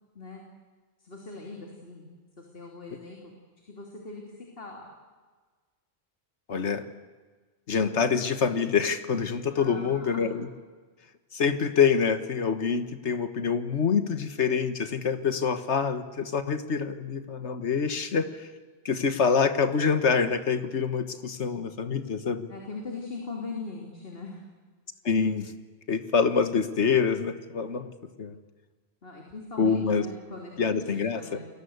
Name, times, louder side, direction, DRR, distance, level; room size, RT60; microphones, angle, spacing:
voice 1, 1.0-2.1 2.4-3.3 3.6-4.9 9.6-10.3 22.5-24.4 29.0-31.5, left 3 dB, 55° left, 0 dB, 3.4 m, -40 dB
voice 2, 6.5-6.8 7.7-10.5 11.3-18.5 18.8-22.5 25.0-25.5 25.9-27.9 28.2-28.3 29.6-30.0 30.6-31.4, left 6 dB, 85° left, 11 dB, 1.7 m, -26 dB
29.5 x 22.0 x 8.1 m, 1.4 s
omnidirectional pair, 1.1 m